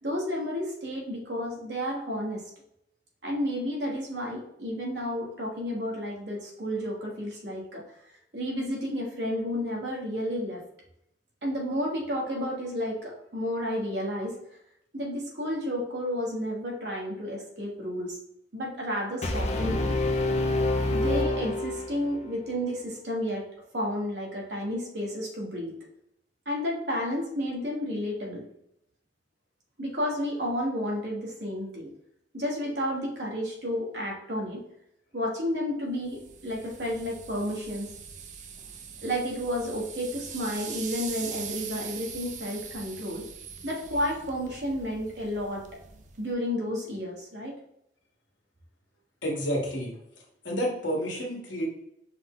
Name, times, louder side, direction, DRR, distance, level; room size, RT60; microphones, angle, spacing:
voice 1, 0.0-2.4 3.2-7.8 8.3-10.6 11.4-14.3 14.9-18.2 18.5-19.9 20.9-23.4 23.7-25.7 26.4-28.4 29.8-31.9 32.3-34.6 35.1-37.9 39.0-43.3 43.6-45.6 46.2-47.5, equal, 65° right, -1 dB, 1.2 m, -31 dB
Brass instrument, 19.2-22.3, left 2 dB, 35° left, 0.5 m, -27 dB
sound 1, 36.1-46.3, right 7 dB, 40° right, 0.4 m, -42 dB
voice 2, 49.2-49.9 50.4-51.7, equal, 90° left, -2 dB, 1.3 m, -29 dB
5.3 x 2.2 x 3.7 m, 0.77 s
head